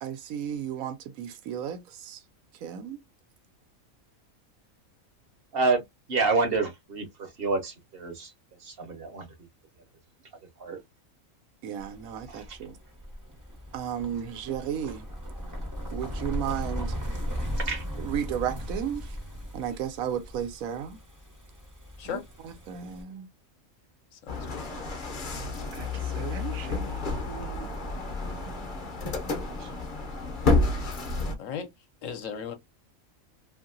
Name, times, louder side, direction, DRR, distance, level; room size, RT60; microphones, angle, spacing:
voice 1, 0.0-2.2 2.6-3.0 11.6-12.8 13.7-15.0 15.9-17.0 18.0-19.1 19.5-21.0 22.1-22.2 22.4-23.3 25.7-25.9 26.2-27.0 29.6-29.7, right 9 dB, 85° right, 1.1 m, -34 dB
voice 2, 6.1-7.1 7.4-8.3 8.8-9.3 10.6-10.8 12.3-12.4 17.7-17.8, right 3 dB, 50° right, 0.9 m, -27 dB
sound 1, 11.8-23.0, equal, 20° right, 0.5 m, -37 dB
voice 3, 24.1-24.7 31.4-31.7 32.0-32.5, left 7 dB, 70° left, 1.0 m, -36 dB
sound 2, 24.3-31.3, left 3 dB, 45° left, 0.7 m, -30 dB
2.8 x 2.7 x 2.6 m
omnidirectional pair, 1.5 m